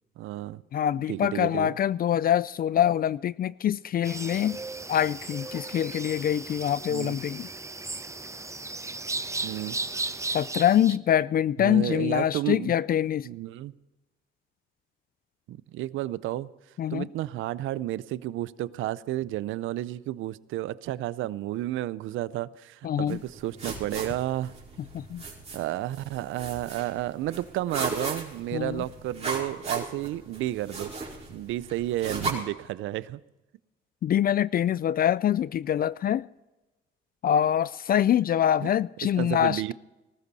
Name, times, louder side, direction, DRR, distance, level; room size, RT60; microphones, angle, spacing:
voice 1, 0.2-0.6 1.1-1.7 6.9-7.2 9.4-9.8 11.6-12.7 13.2-13.7 15.5-16.5 16.9-24.5 25.5-30.9 31.3-33.2 38.6-38.7 39.2-39.7, right 14 dB, 85° right, 0.5 m, -31 dB
voice 2, 0.7-4.6 4.9-7.5 10.3-13.3 16.8-17.1 22.8-23.2 24.9-25.2 28.5-28.8 34.0-36.3 37.2-39.7, left 10 dB, 50° left, 0.4 m, -25 dB
sound 1, 4.0-11.0, right 3 dB, 15° right, 0.6 m, -36 dB
sound 2, 23.1-32.3, right 3 dB, 35° right, 4.7 m, -37 dB
19.5 x 13.5 x 4.1 m
cardioid pair, 90°, 20 cm